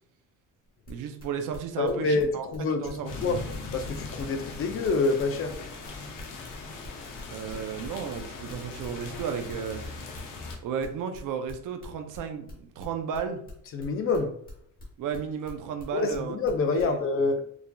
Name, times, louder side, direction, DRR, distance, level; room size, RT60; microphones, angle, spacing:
sound 1, 0.7-16.9, left 1 dB, 25° left, 1.2 m, -48 dB
voice 1, 0.9-3.4 7.3-9.8 10.6-13.4 15.0-16.4 16.7-17.0, right 7 dB, 65° right, 0.5 m, -34 dB
voice 2, 1.8-2.9 3.2-3.4 3.7-5.6 13.7-14.3 15.9-17.4, left 3 dB, 40° left, 0.4 m, -26 dB
sound 2, 3.0-10.6, left 3 dB, 65° left, 0.8 m, -40 dB
4.6 x 2.6 x 2.2 m
cardioid pair, 145°, 33 cm